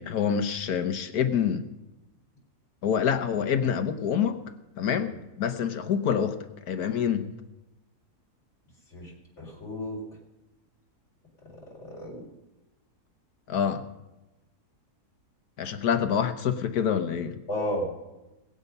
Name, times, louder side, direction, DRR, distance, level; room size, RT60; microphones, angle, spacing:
voice 1, 0.0-1.7 2.8-4.4 4.8-7.3 13.5-13.8 15.6-17.4, left 8 dB, 75° left, 8 dB, 1.5 m, -26 dB
voice 2, 9.4-10.0 11.8-12.2 17.5-17.9, left 1 dB, 45° left, -3 dB, 4.5 m, -32 dB
21.0 x 8.5 x 5.5 m, 1.0 s
omnidirectional pair, 1.7 m